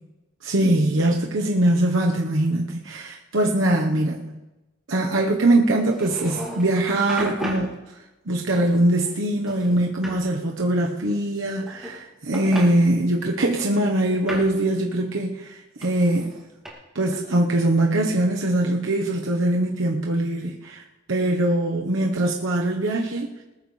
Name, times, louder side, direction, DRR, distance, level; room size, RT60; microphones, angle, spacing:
voice 1, 0.4-4.4 4.9-7.8 8.3-16.3 16.9-23.4, right 1 dB, 75° right, 0 dB, 1.1 m, -22 dB
sound 1, 5.9-6.7 7.1-7.7 8.5-9.2 9.5-10.2 11.4-12.0 12.3-12.7 13.5-14.6 15.8-16.7, right 1 dB, ahead, 2.4 m, -34 dB
20.0 x 13.5 x 3.3 m, 1.1 s
head